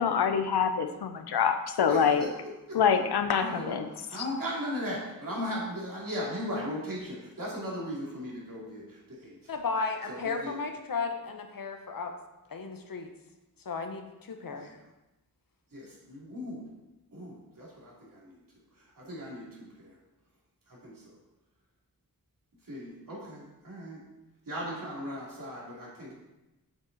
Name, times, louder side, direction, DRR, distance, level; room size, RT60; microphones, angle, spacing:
voice 1, 0.0-2.2 2.7-3.9 4.1-4.2, left 7 dB, 90° left, 8 dB, 0.7 m, -25 dB
voice 2, 1.9-2.4 2.7-2.8 3.3-3.8 4.1-9.4 10.1-10.5 14.5-14.7 15.7-16.7 17.1-18.3 19.0-19.4 19.8-19.9 20.7-20.9 22.7-24.0 24.5-26.1, equal, 60° right, -5 dB, 2.6 m, -37 dB
voice 3, 9.5-12.1 12.5-13.1 13.6-14.7, left 4 dB, 60° left, 5 dB, 0.9 m, -34 dB
7.6 x 5.2 x 4.0 m, 1.0 s
wide cardioid pair, 80°, 38 cm